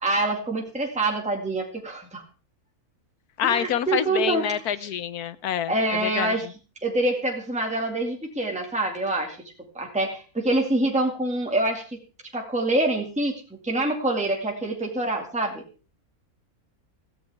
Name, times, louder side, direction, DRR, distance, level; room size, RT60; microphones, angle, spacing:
voice 1, 0.0-2.2 3.4-4.4 4.8-4.9 5.7-6.5 6.8-9.4 9.7-12.0 12.3-13.4 13.6-15.6, right 2 dB, 5° right, 1 dB, 2.3 m, -25 dB
voice 2, 3.4-6.3, left 10 dB, 80° left, 15 dB, 1.4 m, -27 dB
17.0 x 15.0 x 3.6 m, 0.36 s
omnidirectional pair, 1.6 m